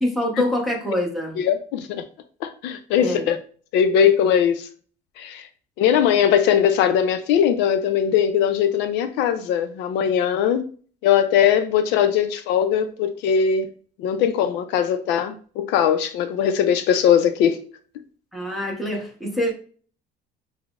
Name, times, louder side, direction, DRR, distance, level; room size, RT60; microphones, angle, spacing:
voice 1, 0.0-1.4 3.0-3.3 18.3-19.5, left 1 dB, ahead, 0.9 m, -25 dB
voice 2, 1.4-2.0 2.4-3.4 3.7-4.7 5.2-5.4 5.8-10.7 11.0-13.7 14.0-17.6, left 8 dB, 75° left, 0.4 m, -20 dB
5.7 x 2.0 x 2.3 m
cardioid pair, 150°, 18 cm